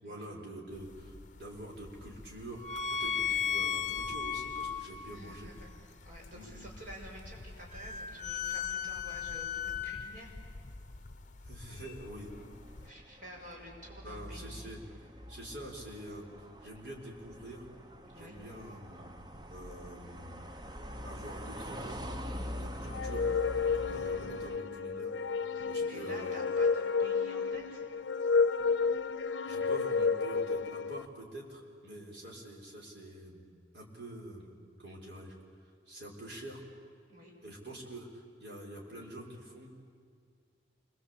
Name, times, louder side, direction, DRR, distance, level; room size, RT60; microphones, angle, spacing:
voice 1, 0.0-2.6 2.9-5.5 6.3-6.6 11.4-12.3 14.0-14.8 15.3-17.7 18.1-19.0 19.5-20.3 21.0-22.1 22.6-23.3 23.9-25.1 25.7-26.4 29.4-33.4 33.7-34.5 34.8-35.3 35.9-36.6 37.4-39.9, right 1 dB, 65° right, -2 dB, 5.9 m, -46 dB
sound 1, 0.7-12.9, left 7 dB, 40° left, 0.8 m, -38 dB
voice 2, 5.1-5.7 6.0-10.3 12.8-14.7 18.1-18.3 23.8-24.2 25.5-27.8 37.1-37.3, equal, 45° right, -2 dB, 6.4 m, -50 dB
sound 2, 12.0-24.6, equal, 25° right, 1.0 m, -44 dB
sound 3, 22.9-31.1, left 5 dB, 80° left, 0.6 m, -31 dB
28.5 x 23.5 x 8.7 m, 2.2 s
head